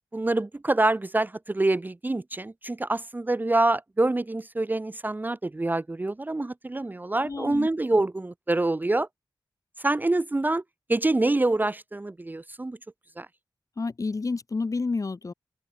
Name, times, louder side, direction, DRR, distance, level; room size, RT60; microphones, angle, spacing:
voice 1, 0.1-9.1 9.8-10.6 10.9-12.8 13.2-13.3, right 2 dB, 20° right, 1.1 m, -26 dB
voice 2, 7.2-7.7 13.8-15.3, left 3 dB, 40° left, 5.9 m, -29 dB
open air
wide cardioid pair, 110°, 8 cm